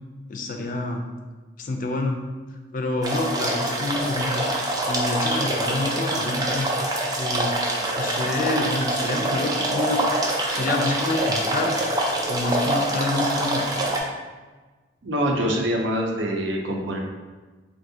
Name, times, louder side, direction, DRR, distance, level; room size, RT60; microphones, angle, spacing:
voice 1, 0.3-1.0 1.6-2.2 2.7-4.5 4.9-6.7 7.2-7.6 8.0-10.2 10.5-11.8 12.3-13.6, left 2 dB, 45° left, 3 dB, 0.4 m, -27 dB
sound 1, 3.0-14.0, right 1 dB, 20° right, 0.4 m, -25 dB
voice 2, 15.0-17.0, equal, 85° right, 0 dB, 0.6 m, -24 dB
3.5 x 2.6 x 2.7 m, 1.3 s
head